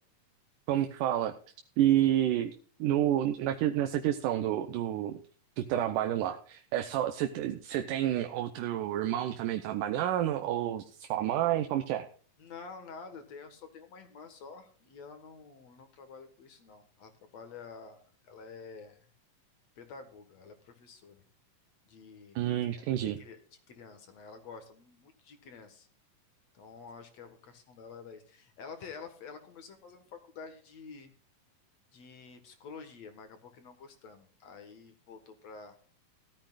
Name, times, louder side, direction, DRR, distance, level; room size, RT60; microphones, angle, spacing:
voice 1, 0.7-1.3 1.8-2.5 2.8-5.2 5.6-12.1 22.4-23.2, right 12 dB, 80° right, 6 dB, 2.3 m, -29 dB
voice 2, 12.4-19.0 19.8-21.2 21.9-22.9 23.2-23.4 23.7-25.9 26.5-31.1 31.9-35.8, left 5 dB, 60° left, 7 dB, 2.5 m, -49 dB
17.0 x 13.0 x 2.4 m, 0.41 s
omnidirectional pair, 3.8 m